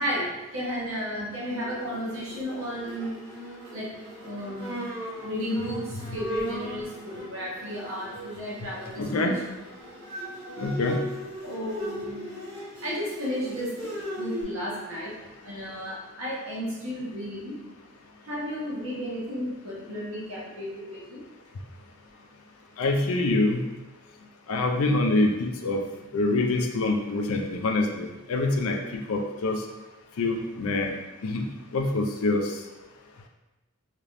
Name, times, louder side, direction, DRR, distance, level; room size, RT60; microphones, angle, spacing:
voice 1, 0.0-3.1 3.7-9.4 11.4-12.3 12.8-15.1 15.4-17.5 18.2-21.2, equal, 70° right, -6 dB, 1.1 m, -33 dB
Bowed string instrument, 1.5-14.4, equal, 50° right, 1.4 m, -39 dB
voice 2, 9.0-9.3 10.6-11.0 22.8-23.6 24.5-25.8 26.1-29.6 30.2-30.9 31.2-31.5 31.7-32.5, left 2 dB, 70° left, 3 dB, 0.4 m, -25 dB
3.3 x 2.9 x 2.6 m, 1.0 s
head